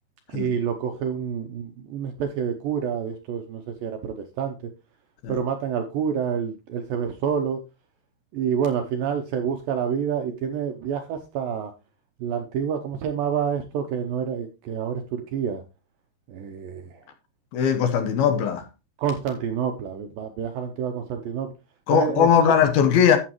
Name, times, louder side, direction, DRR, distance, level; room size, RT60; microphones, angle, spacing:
voice 1, 0.3-4.6 5.3-7.6 8.3-11.7 12.2-15.6 16.3-17.0 19.0-21.5 21.9-22.5, right 7 dB, 75° right, 2.1 m, -28 dB
voice 2, 17.5-18.7 21.9-23.2, left 8 dB, 75° left, 2.6 m, -19 dB
11.5 x 7.8 x 3.0 m
omnidirectional pair, 4.9 m